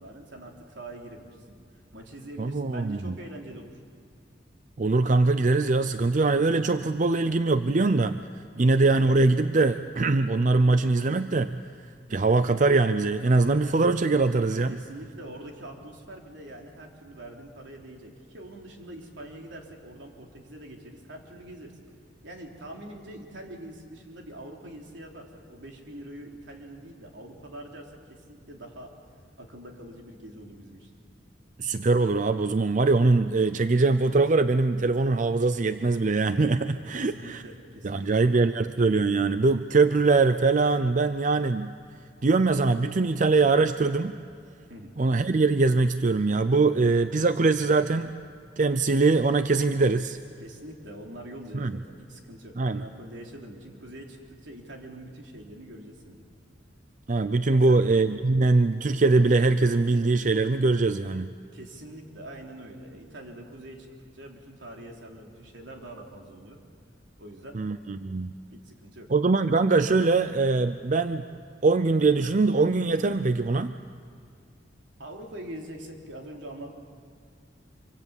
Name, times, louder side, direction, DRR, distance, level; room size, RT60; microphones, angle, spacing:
voice 1, 0.0-1.6 1.9-3.7 8.5-8.8 14.7-21.8 22.2-28.9 29.4-30.9 36.9-38.3 44.7-45.0 50.4-56.3 57.5-58.0 61.5-63.9 64.1-66.6 67.2-67.6 68.5-69.1 75.0-76.8, right 1 dB, 75° right, 1 dB, 3.6 m, -44 dB
voice 2, 2.4-3.1 4.8-8.2 8.6-11.5 12.1-14.8 31.6-37.4 37.8-41.7 42.2-44.2 45.0-48.1 48.6-50.2 51.5-51.7 52.6-52.8 57.1-61.3 67.5-68.3 69.1-71.3 71.6-73.7, right 3 dB, 45° right, 11 dB, 0.5 m, -22 dB
26.0 x 25.0 x 7.2 m, 2.3 s
head